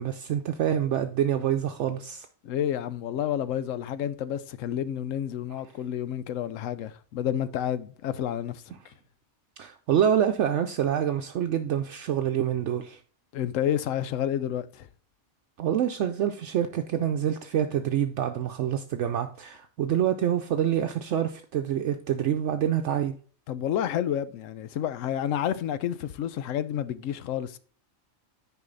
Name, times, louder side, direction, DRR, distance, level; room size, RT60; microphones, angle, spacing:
voice 1, 0.0-2.3 9.6-13.0 15.6-23.1, right 9 dB, 70° right, 0.9 m, -26 dB
voice 2, 2.4-8.6 13.3-14.9 23.5-27.6, left 10 dB, 85° left, 1.0 m, -30 dB
9.7 x 4.8 x 3.8 m
omnidirectional pair, 1.3 m